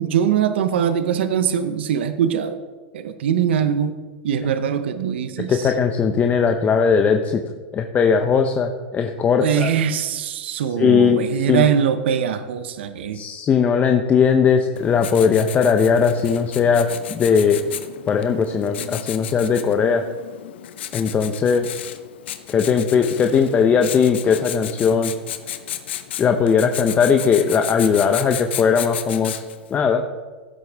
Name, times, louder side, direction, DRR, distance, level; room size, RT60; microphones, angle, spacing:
voice 1, 0.0-2.6 2.9-5.6 9.4-13.2, right 8 dB, 80° right, 10 dB, 0.8 m, -22 dB
voice 2, 5.5-7.4 7.7-9.7 10.8-11.7 13.1-17.6 18.1-20.0 20.9-21.7 22.5-25.1 26.2-29.4 29.7-30.0, left 6 dB, 25° left, 5 dB, 0.7 m, -18 dB
Writing, 14.8-29.7, left 11 dB, 80° left, 0.9 m, -34 dB
15.5 x 7.8 x 3.5 m, 1.4 s
hypercardioid pair, 120°, 6 cm